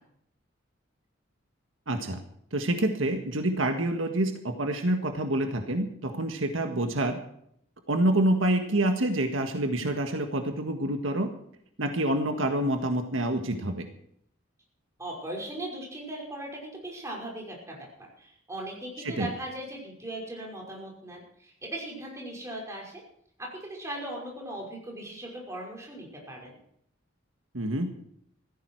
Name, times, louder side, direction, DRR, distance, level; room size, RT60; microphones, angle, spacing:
voice 1, 1.9-2.2 2.5-7.2 7.9-11.3 11.8-13.9 19.0-19.3 27.5-27.9, right 1 dB, 80° right, 5 dB, 1.7 m, -27 dB
voice 2, 15.0-23.0 23.4-26.6, right 1 dB, 15° right, -2 dB, 5.6 m, -39 dB
16.0 x 14.5 x 4.8 m, 0.68 s
head